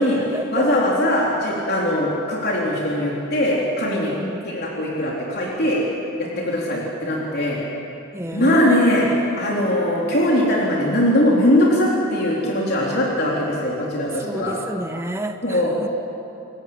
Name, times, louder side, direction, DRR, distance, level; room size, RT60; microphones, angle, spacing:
voice 1, 0.0-0.7 4.0-4.6 8.1-8.8 9.4-9.7 14.1-15.9, right 1 dB, 10° right, 5 dB, 1.3 m, -30 dB
voice 2, 0.5-4.2 4.4-5.8 6.2-7.6 8.3-9.0 9.4-14.5 15.4-15.9, left 1 dB, 50° left, -4 dB, 3.9 m, -20 dB
29.0 x 15.0 x 8.8 m, 2.7 s
head